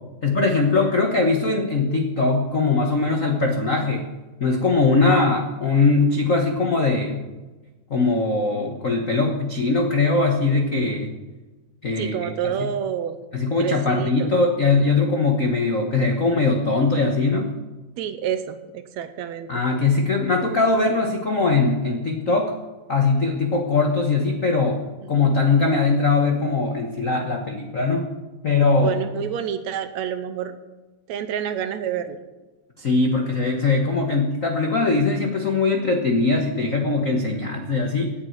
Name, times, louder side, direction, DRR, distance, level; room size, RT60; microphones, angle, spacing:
voice 1, 0.2-4.1 4.4-7.3 7.9-11.1 11.8-12.7 13.3-17.6 19.5-22.6 22.9-24.8 25.1-28.1 28.4-29.0 32.8-38.1, left 3 dB, 70° left, 2 dB, 0.7 m, -21 dB
voice 2, 12.0-13.2 13.6-14.3 18.0-19.5 25.0-25.1 28.8-30.6 31.1-32.2, right 9 dB, 75° right, 10 dB, 1.9 m, -28 dB
17.5 x 10.5 x 4.6 m, 1.2 s
omnidirectional pair, 3.5 m